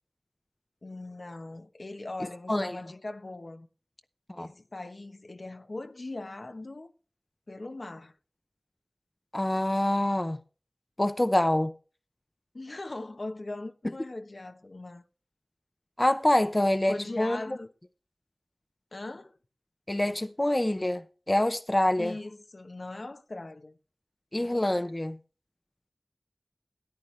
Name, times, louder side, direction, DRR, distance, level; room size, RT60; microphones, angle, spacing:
voice 1, 0.8-3.7 4.3-6.9 7.5-8.1 12.5-15.0 16.9-17.7 18.9-19.4 22.0-23.8 24.3-25.0, left 2 dB, 75° left, 1.1 m, -40 dB
voice 2, 9.3-10.4 11.0-11.7 16.0-17.6 19.9-22.1 24.3-25.2, left 1 dB, 30° left, 0.7 m, -26 dB
13.5 x 10.5 x 3.3 m
wide cardioid pair, 45°, 0 cm